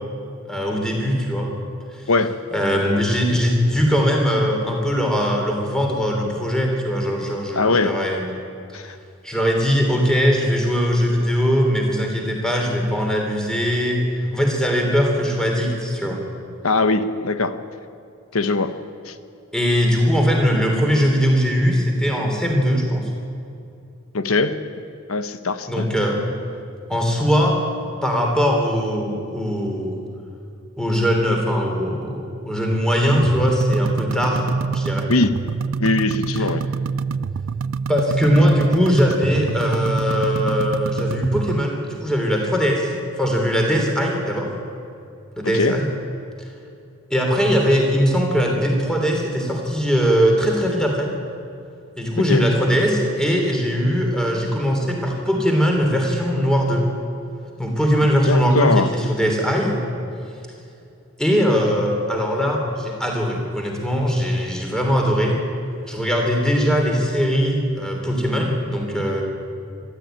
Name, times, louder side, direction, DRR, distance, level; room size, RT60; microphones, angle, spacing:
voice 1, 0.5-1.5 2.5-8.3 9.2-16.2 19.5-23.1 25.7-26.2 26.9-27.6 28.0-30.0 30.8-34.5 34.7-35.1 37.9-44.5 45.4-45.9 47.1-51.1 52.0-56.9 57.6-59.8 61.2-65.4 65.9-69.2, equal, 5° left, 0 dB, 3.2 m, -20 dB
voice 2, 7.5-7.9 8.7-9.0 16.6-17.6 18.3-18.7 19.1-19.2 24.1-24.6 25.1-25.9 35.1-35.3 35.8-36.6 45.4-45.8 52.3-52.4 58.3-58.9, left 3 dB, 85° left, 10 dB, 1.1 m, -20 dB
sound 1, 33.1-41.6, right 5 dB, 65° right, 0.4 m, -26 dB
23.0 x 13.5 x 9.1 m, 2.6 s
head